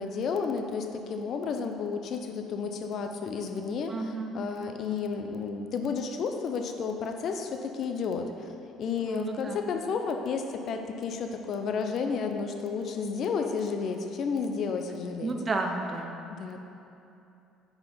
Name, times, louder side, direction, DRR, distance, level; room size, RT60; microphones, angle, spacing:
voice 1, 0.0-15.3 16.4-16.6, left 5 dB, 55° left, 5 dB, 0.6 m, -32 dB
voice 2, 3.9-4.4 9.0-9.6 15.2-16.2, right 3 dB, 30° right, 3 dB, 0.7 m, -32 dB
5.1 x 4.8 x 5.5 m, 2.8 s
supercardioid pair, 90°, 0 cm